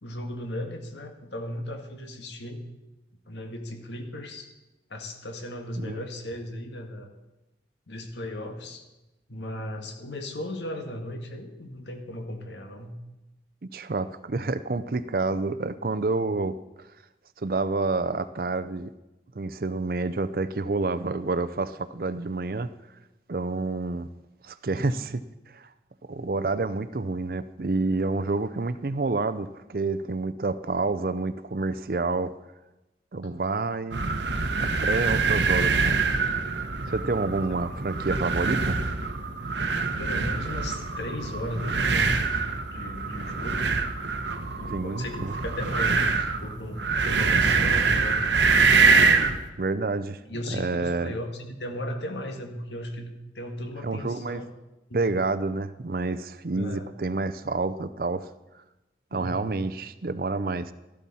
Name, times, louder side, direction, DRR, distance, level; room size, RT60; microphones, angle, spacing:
voice 1, 0.0-2.6 3.3-4.5 4.9-7.1 7.9-8.8 9.3-12.9 24.7-25.0 37.7-37.8 40.0-42.4 42.7-43.7 44.5-48.6 50.3-53.1 53.4-54.5 54.9-55.1 56.5-56.9 59.1-59.5, left 1 dB, 85° left, 5 dB, 1.7 m, -36 dB
voice 2, 13.7-16.6 17.4-18.9 19.3-22.7 23.3-24.1 24.4-25.2 25.5-25.7 26.1-32.3 33.1-34.1 34.6-36.0 36.8-38.8 44.6-45.3 49.6-50.2 50.5-51.2 53.8-54.4 54.9-58.3 59.1-60.7, right 3 dB, 55° right, 13 dB, 0.5 m, -28 dB
sound 1, 33.9-49.4, right 4 dB, 85° right, 1.1 m, -24 dB
13.5 x 12.0 x 4.2 m, 1.0 s
head